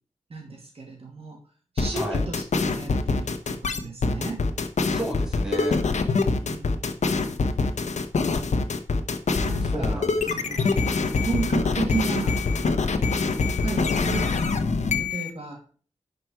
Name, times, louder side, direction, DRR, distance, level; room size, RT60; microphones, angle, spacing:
voice 1, 0.3-1.4 1.7-4.4 6.4-7.0 9.4-12.4 13.6-14.4 15.0-15.6, right 4 dB, 55° right, 1 dB, 2.6 m, -33 dB
sound 1, 1.8-15.3, left 4 dB, 85° left, 1.1 m, -24 dB
voice 2, 4.8-5.8 9.6-10.5, right 1 dB, 5° right, -1 dB, 3.3 m, -33 dB
11.0 x 5.3 x 4.7 m, 0.40 s
wide cardioid pair, 125°, 12 cm